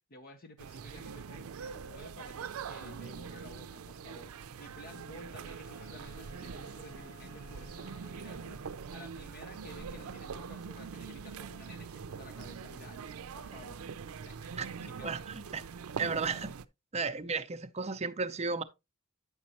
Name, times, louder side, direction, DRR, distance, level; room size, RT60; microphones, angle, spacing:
voice 1, 0.0-13.9 14.1-14.5 14.8-15.1, left 1 dB, 45° left, 0.9 m, -53 dB
sound 1, 0.6-16.6, right 6 dB, 85° right, 0.5 m, -43 dB
Wind instrument woodwind instrument, 5.4-9.0, equal, 85° left, 3.8 m, -54 dB
voice 2, 15.0-15.6 16.0-16.5 16.9-18.6, right 4 dB, 30° right, 0.6 m, -34 dB
9.5 x 6.4 x 2.9 m
head